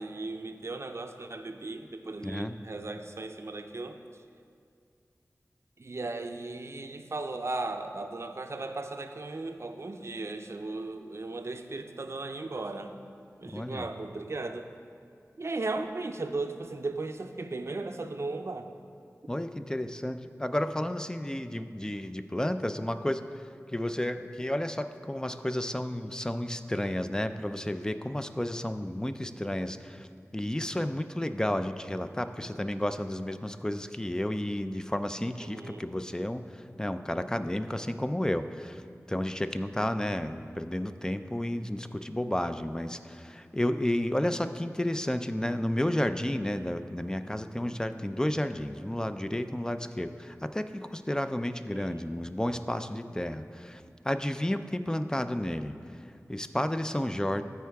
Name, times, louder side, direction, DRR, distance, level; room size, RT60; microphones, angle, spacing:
voice 1, 0.0-4.0 5.8-13.0 13.4-14.7 15.4-18.7 35.4-35.8 51.7-52.0, right 3 dB, 50° right, 7 dB, 0.5 m, -36 dB
voice 2, 2.2-2.5 13.5-13.9 19.3-23.2 23.7-30.1 30.3-36.4 36.8-38.8 39.1-55.7 56.3-57.4, left 1 dB, 10° left, 10 dB, 0.3 m, -32 dB
14.0 x 4.6 x 3.5 m, 2.3 s
wide cardioid pair, 65°, 6 cm